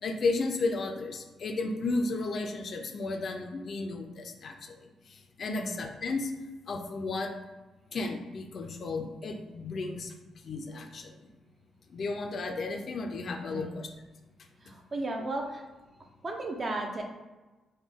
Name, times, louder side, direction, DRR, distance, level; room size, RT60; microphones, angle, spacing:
voice 1, 0.0-6.3 6.7-7.4 7.9-10.1 10.4-11.3 11.9-13.9, left 3 dB, 50° left, 4 dB, 0.4 m, -33 dB
voice 2, 14.6-15.7 16.2-17.0, right 2 dB, 35° right, 2 dB, 0.5 m, -35 dB
3.5 x 2.2 x 3.5 m, 1.2 s
cardioid pair, 120°, 0 cm